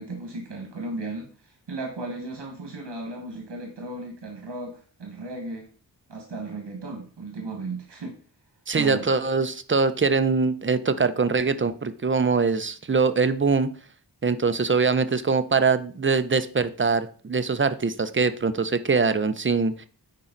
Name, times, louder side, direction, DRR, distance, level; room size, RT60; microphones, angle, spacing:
voice 1, 0.0-5.7 6.1-8.1 8.7-9.1, right 2 dB, 75° right, 2 dB, 1.6 m, -35 dB
voice 2, 8.7-13.7 14.2-19.9, right 4 dB, 30° right, 11 dB, 0.5 m, -23 dB
9.9 x 4.4 x 3.8 m, 0.41 s
wide cardioid pair, 115°, 42 cm